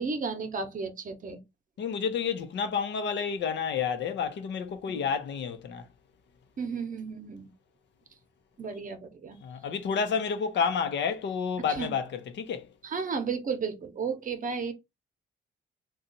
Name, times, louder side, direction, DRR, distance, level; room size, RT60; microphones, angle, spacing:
voice 1, 0.0-1.4 4.9-5.0 6.6-7.5 8.6-9.4 11.7-11.9 12.8-14.7, right 5 dB, 40° right, 0.8 m, -33 dB
voice 2, 1.8-5.8 9.4-12.7, left 6 dB, 65° left, 0.7 m, -30 dB
2.7 x 2.3 x 3.9 m
cardioid pair, 90°, 20 cm